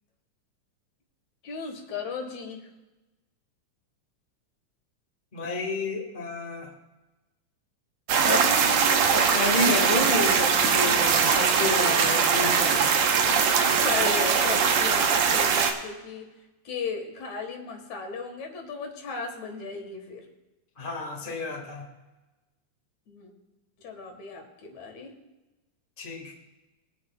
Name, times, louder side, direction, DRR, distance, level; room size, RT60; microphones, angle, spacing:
voice 1, 1.4-2.7 13.8-16.3 16.6-20.2 23.1-23.3 23.8-25.1, left 5 dB, 70° left, 3 dB, 2.7 m, -36 dB
voice 2, 5.3-6.7 8.2-8.6 9.1-12.9 20.8-21.8 26.0-26.3, left 3 dB, 25° left, 1 dB, 1.4 m, -30 dB
sound 1, 8.1-15.7, right 6 dB, 70° right, 2.1 m, -22 dB
21.5 x 9.0 x 2.3 m, 1.1 s
omnidirectional pair, 3.4 m